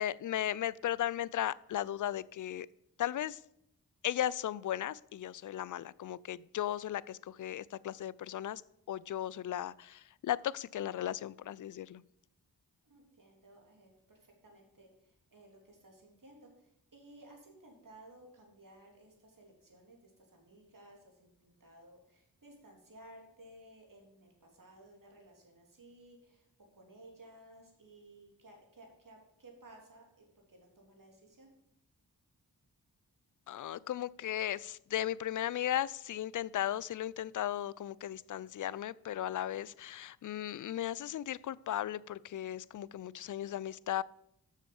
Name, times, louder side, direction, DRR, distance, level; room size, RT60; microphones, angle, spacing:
voice 1, 0.0-2.7 3.0-3.4 4.0-8.6 8.9-12.0 33.5-44.0, left 11 dB, 50° left, 21 dB, 0.4 m, -36 dB
voice 2, 12.8-26.5 26.7-31.5, right 1 dB, 50° right, 0 dB, 3.3 m, -57 dB
7.4 x 6.4 x 7.0 m, 0.77 s
cardioid pair, 40°, 40 cm